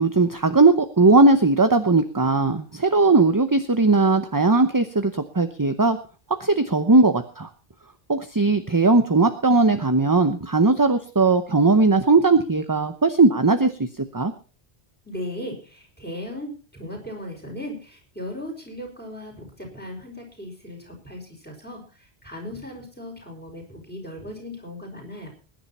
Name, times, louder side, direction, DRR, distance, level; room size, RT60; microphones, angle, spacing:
voice 1, 0.0-6.0 6.4-7.5 8.1-13.7 14.1-14.3, right 3 dB, 20° right, 9 dB, 0.8 m, -18 dB
voice 2, 15.1-21.8 22.2-25.3, left 1 dB, 10° left, 0 dB, 5.4 m, -37 dB
21.0 x 10.5 x 4.3 m, 0.36 s
omnidirectional pair, 1.1 m